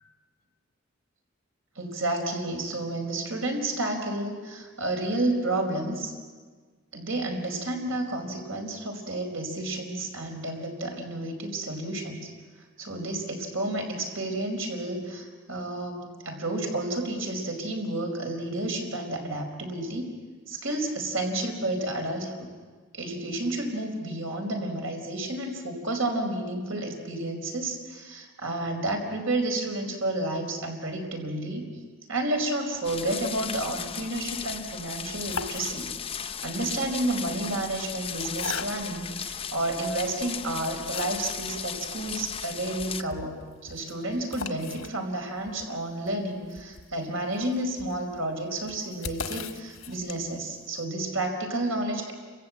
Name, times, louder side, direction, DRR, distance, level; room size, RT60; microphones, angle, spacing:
voice 1, 1.7-6.1 6.9-12.3 12.8-20.1 20.5-22.5 22.9-31.7 32.1-52.1, right 1 dB, 90° right, 3 dB, 4.7 m, -31 dB
sound 1, 32.8-43.0, left 7 dB, 30° left, 0.6 m, -36 dB
sound 2, 35.0-36.2 37.1-39.1 39.7-39.8 40.3-41.5 41.8-41.9 42.1-42.2 42.6-50.5, left 5 dB, 85° left, 1.2 m, -40 dB
29.0 x 15.5 x 8.5 m, 1.5 s
head